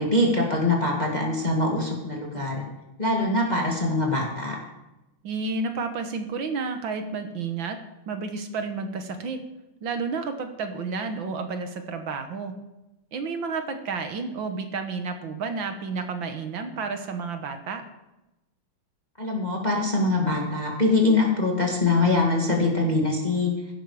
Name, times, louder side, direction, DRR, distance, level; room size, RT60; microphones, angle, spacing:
voice 1, 0.0-2.6 3.0-4.6 19.2-23.5, left 2 dB, 20° left, -1 dB, 2.0 m, -23 dB
voice 2, 5.2-7.8 8.1-9.4 9.8-12.6 13.1-17.8, right 4 dB, 70° right, 7 dB, 1.8 m, -31 dB
15.5 x 12.0 x 4.9 m, 0.97 s
omnidirectional pair, 2.3 m